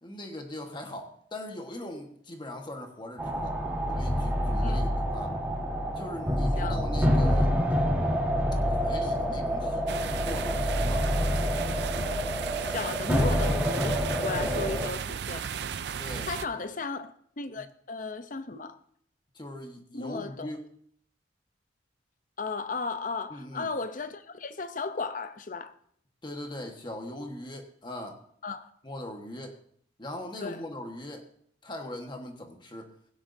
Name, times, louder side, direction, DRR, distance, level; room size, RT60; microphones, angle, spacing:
voice 1, 0.0-3.6 3.9-5.3 6.0-7.5 8.7-11.1 14.4-14.6 16.0-16.6 19.3-20.6 23.3-23.7 26.2-28.2 28.8-29.6 30.0-31.2 31.6-32.9, left 1 dB, 25° left, 1.4 m, -40 dB
sound 1, 3.2-14.9, equal, 10° right, 1.6 m, -27 dB
sound 2, 9.9-16.5, right 7 dB, 60° right, 0.4 m, -35 dB
voice 2, 12.6-15.5 16.3-18.8 19.9-20.5 22.4-25.7 28.4-28.7 30.4-30.6, left 4 dB, 45° left, 0.7 m, -35 dB
16.5 x 9.8 x 2.7 m
head